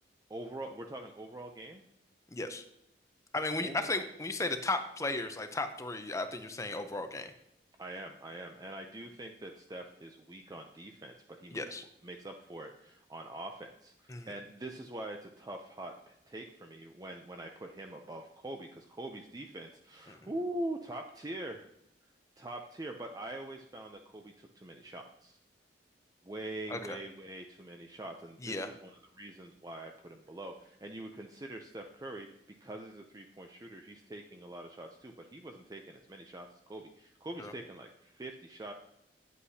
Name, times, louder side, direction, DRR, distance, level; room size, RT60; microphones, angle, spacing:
voice 1, 0.3-1.8 3.6-3.9 7.8-11.6 12.0-21.7 22.4-25.4 26.2-32.3 32.6-38.7, right 1 dB, 20° right, 3 dB, 0.5 m, -44 dB
voice 2, 2.3-2.6 3.3-7.3 11.5-11.8 14.1-14.3 20.1-20.2 26.7-27.0 28.4-28.7 37.4-37.5, left 2 dB, 20° left, 8 dB, 0.6 m, -35 dB
9.6 x 8.3 x 2.8 m, 0.79 s
head